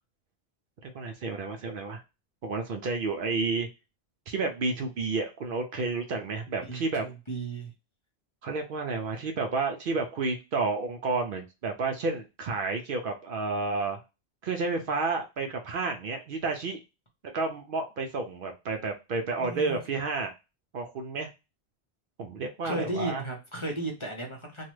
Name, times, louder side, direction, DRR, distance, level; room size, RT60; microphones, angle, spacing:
voice 1, 0.8-2.0 2.4-3.7 4.3-7.0 8.4-14.0 14.4-16.8 17.3-20.3 20.7-21.3 22.2-23.2, right 3 dB, 60° right, 4 dB, 0.7 m, -31 dB
voice 2, 6.7-7.7 19.4-19.8 22.6-24.7, right 2 dB, 30° left, 1 dB, 0.8 m, -35 dB
3.1 x 2.3 x 3.1 m, 0.27 s
omnidirectional pair, 1.1 m